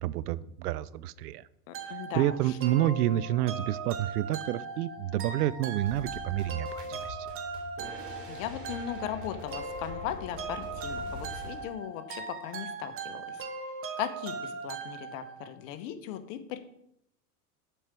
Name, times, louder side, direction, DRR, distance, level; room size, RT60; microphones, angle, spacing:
voice 1, 0.0-1.4 2.1-7.2, right 13 dB, 80° right, 19 dB, 0.6 m, -29 dB
voice 2, 1.7-2.6 8.3-13.4 14.0-16.6, left 10 dB, 55° left, 10 dB, 1.1 m, -38 dB
sound 1, 1.7-15.6, right 5 dB, 30° right, 1.2 m, -40 dB
sound 2, 2.8-12.8, left 17 dB, 80° left, 1.3 m, -48 dB
sound 3, 5.8-11.7, equal, 50° right, 3.4 m, -44 dB
7.6 x 4.8 x 6.7 m, 0.75 s
hypercardioid pair, 120°, 46 cm